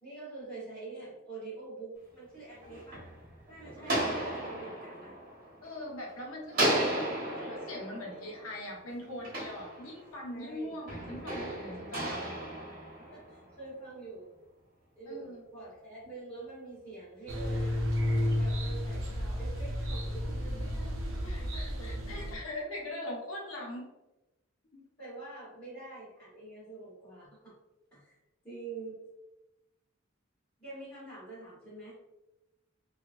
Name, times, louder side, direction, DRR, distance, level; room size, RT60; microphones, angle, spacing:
voice 1, 0.0-3.0 3.5-5.2 10.3-10.8 13.0-14.3 15.0-17.8 18.3-22.1 25.0-27.5 27.9-28.2 28.4-29.0 30.6-32.0, right 3 dB, 15° left, -11 dB, 1.1 m, -46 dB
sound 1, 2.3-6.1 6.5-10.3 10.9-13.5, right 1 dB, 45° right, 1.1 m, -35 dB
voice 2, 5.6-12.2 15.1-15.4 21.2-23.9 24.7-24.8, left 1 dB, 75° left, -2 dB, 0.8 m, -41 dB
sound 2, 17.3-22.4, left 1 dB, 65° right, 0.6 m, -32 dB
2.9 x 2.3 x 2.5 m, 0.98 s
head